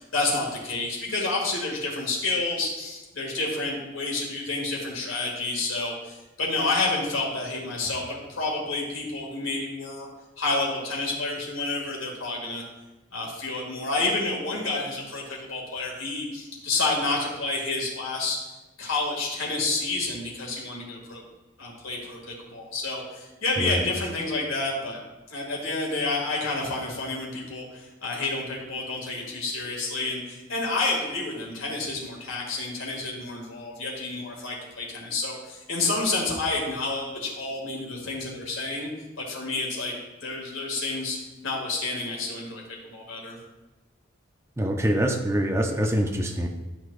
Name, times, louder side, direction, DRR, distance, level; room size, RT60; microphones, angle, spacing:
voice 1, 0.0-10.1 10.4-12.6 13.1-18.5 18.8-21.2 21.6-25.0 25.3-38.9 39.2-39.9 40.2-41.2 41.4-43.4, left 3 dB, 80° left, -2 dB, 2.1 m, -29 dB
voice 2, 44.6-46.5, equal, 15° right, 3 dB, 0.5 m, -25 dB
11.5 x 6.0 x 2.5 m, 1.1 s
head